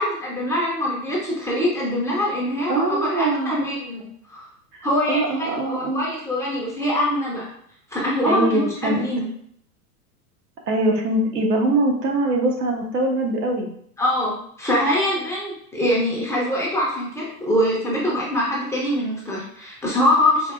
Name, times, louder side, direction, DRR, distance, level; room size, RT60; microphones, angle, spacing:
voice 1, 0.0-4.5 4.8-7.5 7.9-9.3 14.0-20.5, left 1 dB, 5° left, -5 dB, 0.5 m, -23 dB
voice 2, 2.7-3.5 4.7-6.0 8.3-9.0 10.7-13.7, right 2 dB, 90° right, 1 dB, 1.0 m, -22 dB
4.6 x 2.4 x 2.4 m, 0.66 s
hypercardioid pair, 120°, 46 cm